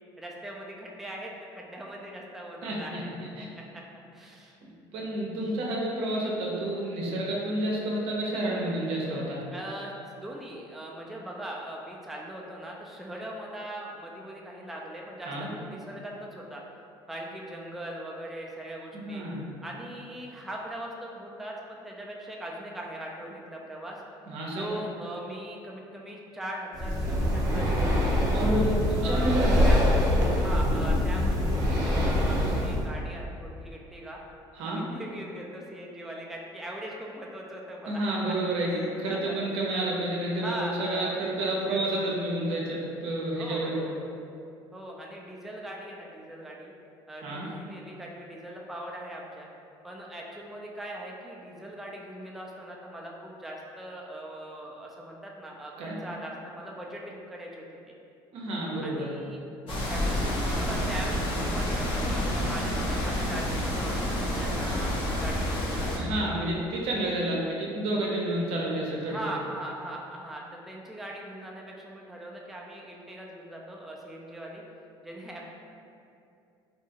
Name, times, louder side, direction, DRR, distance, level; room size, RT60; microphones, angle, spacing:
voice 1, 0.2-4.6 4.9-5.1 9.5-16.6 17.1-19.2 19.6-24.0 24.5-28.4 29.0-34.2 34.6-38.4 38.6-39.9 40.4-41.8 43.3-44.1 44.7-46.7 47.1-49.5 49.8-57.9 58.8-59.4 59.6-66.4 69.1-74.6 75.0-75.4, right 1 dB, ahead, -2 dB, 0.3 m, -40 dB
voice 2, 2.6-3.0 3.4-3.5 4.9-9.4 15.3-15.5 18.9-19.4 24.3-24.8 28.3-29.5 34.5-34.8 37.9-43.8 47.2-47.5 55.8-55.9 58.3-59.1 66.0-69.2, right 1 dB, 70° right, -3 dB, 0.6 m, -30 dB
Breathing, 26.7-32.9, left 1 dB, 35° right, 0.7 m, -24 dB
sound 1, 59.7-66.0, equal, 60° left, 0.7 m, -29 dB
2.7 x 2.3 x 2.8 m, 2.5 s
supercardioid pair, 95°, 10 cm